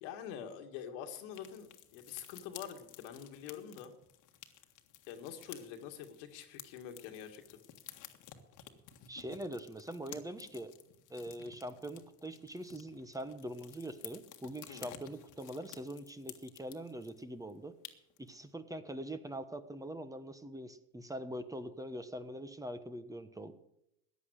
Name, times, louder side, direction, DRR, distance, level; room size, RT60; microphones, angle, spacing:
voice 1, 0.0-3.9 5.1-7.6 14.7-14.9, left 8 dB, 80° left, 6 dB, 2.1 m, -46 dB
sound 1, 1.3-17.2 17.5-17.6 17.8-18.3, left 11 dB, 55° left, 1.7 m, -54 dB
voice 2, 9.1-10.7 11.1-17.7 18.2-23.5, right 1 dB, 10° right, 10 dB, 1.2 m, -43 dB
14.5 x 9.9 x 6.5 m, 0.81 s
supercardioid pair, 100°, 36 cm